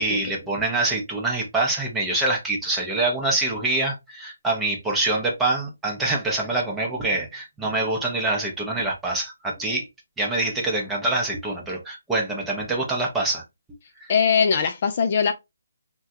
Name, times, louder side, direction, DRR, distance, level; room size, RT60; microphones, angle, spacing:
voice 1, 0.0-9.9 10.2-13.4 14.0-14.1, right 2 dB, 5° right, 0.6 m, -25 dB
voice 2, 14.1-15.3, left 6 dB, 35° left, 0.3 m, -20 dB
3.4 x 2.2 x 2.6 m
hypercardioid pair, 165°, 0 cm